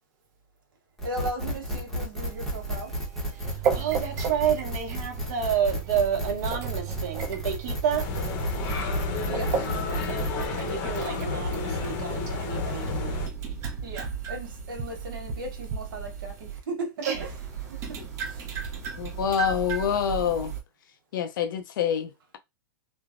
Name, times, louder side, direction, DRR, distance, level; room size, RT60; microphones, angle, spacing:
sound 1, 1.0-10.5, equal, 5° left, 0.8 m, -33 dB
voice 1, 1.0-3.0 9.3-9.7 13.8-17.3 17.6-18.5, right 2 dB, 75° right, 1.1 m, -36 dB
sound 2, 2.2-16.6 17.1-20.6, right 7 dB, 25° right, 0.6 m, -35 dB
voice 2, 3.3-8.1 9.9-10.2 10.5-13.3 17.0-17.2, right 8 dB, 50° right, 0.9 m, -30 dB
sound 3, 8.0-13.3, left 3 dB, 40° left, 0.7 m, -30 dB
voice 3, 19.0-20.5 21.1-22.4, left 8 dB, 70° left, 0.5 m, -27 dB
3.2 x 2.0 x 2.4 m
hypercardioid pair, 155°, 11 cm